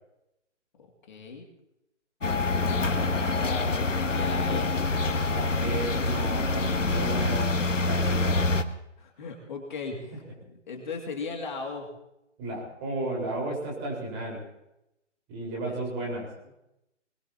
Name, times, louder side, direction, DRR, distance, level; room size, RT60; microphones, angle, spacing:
voice 1, 1.1-1.4 2.4-4.7 9.0-11.9 15.6-15.8 16.0-16.1, left 4 dB, 40° left, 2 dB, 2.5 m, -38 dB
sound 1, 2.2-8.6, left 3 dB, 85° left, 1.3 m, -26 dB
voice 2, 5.3-7.5 7.8-8.4 12.4-14.4 15.3-16.3, right 2 dB, 20° right, -3 dB, 4.8 m, -33 dB
22.5 x 21.5 x 2.9 m, 0.86 s
figure-of-eight pair, 150°, 36 cm